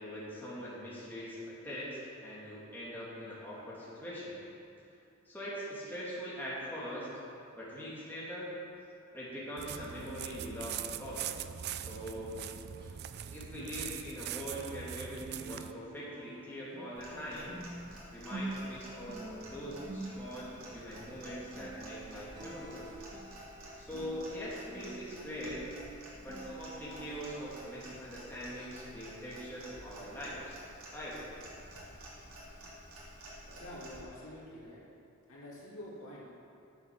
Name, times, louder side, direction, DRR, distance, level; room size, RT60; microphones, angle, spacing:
voice 1, 0.0-4.4 5.3-7.1 7.5-8.5 9.1-11.3 11.7-12.3 13.3-17.6 18.1-22.9 23.8-25.6 26.2-30.6 30.9-31.2, equal, 10° left, -8 dB, 2.4 m, -42 dB
Footsteps on leaves, 9.6-15.7, right 10 dB, 50° right, 0.3 m, -42 dB
sound 1, 12.6-14.8 15.1-28.2 28.6-28.8 29.3-29.4, right 2 dB, 25° right, 1.5 m, -48 dB
Clock, 16.9-34.0, equal, 90° right, 2.8 m, -51 dB
voice 2, 33.6-34.8 35.3-36.4, left 1 dB, 75° left, -6 dB, 2.5 m, -47 dB
9.8 x 7.1 x 6.2 m, 2.6 s
head